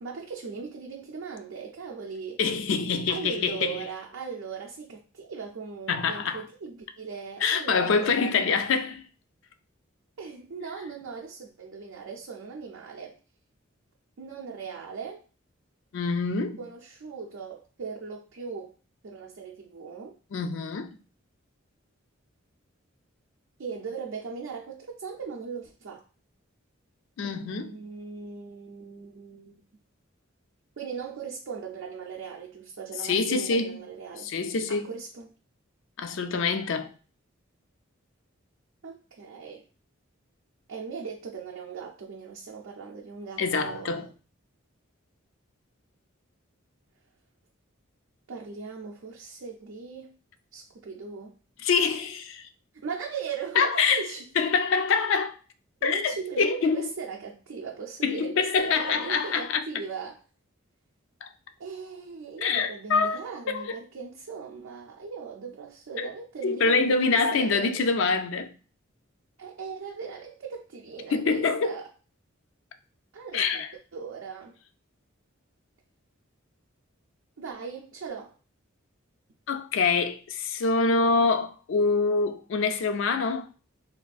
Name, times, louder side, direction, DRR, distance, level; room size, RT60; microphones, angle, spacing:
voice 1, 0.0-2.4 3.1-8.5 10.2-13.1 14.2-15.2 16.6-18.7 19.0-20.1 23.6-26.0 27.2-29.6 30.8-34.3 34.7-35.3 38.8-39.6 40.7-44.1 48.3-50.1 50.5-51.4 52.7-54.2 55.8-60.2 61.6-67.8 69.4-71.9 73.1-73.6 73.9-74.6 77.4-78.3, right 5 dB, 75° right, 0.5 m, -39 dB
voice 2, 2.4-3.8 5.9-6.4 7.4-9.0 15.9-16.6 20.3-21.0 27.2-27.8 33.0-33.8 34.2-34.9 36.0-36.9 43.4-44.1 51.6-52.5 53.6-54.1 54.4-55.4 55.8-56.9 58.0-59.6 61.2-61.3 62.4-63.8 66.0-66.1 66.4-68.5 71.1-71.8 73.3-73.7 79.5-83.5, left 4 dB, 65° left, 0.4 m, -25 dB
3.4 x 2.4 x 2.3 m
head